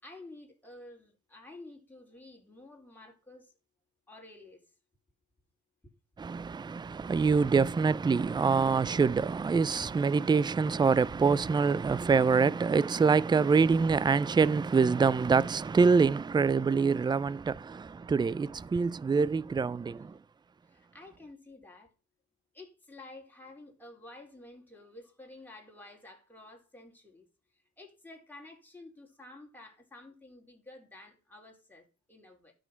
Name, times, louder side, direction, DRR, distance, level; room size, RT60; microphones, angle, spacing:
voice 1, 0.0-3.5 4.1-4.6 20.6-21.9 22.5-27.3 27.5-32.5, left 2 dB, 5° left, 4.3 m, -51 dB
voice 2, 6.2-20.2, right 5 dB, 15° right, 0.4 m, -25 dB
12.0 x 6.3 x 5.6 m
cardioid pair, 90°, 30 cm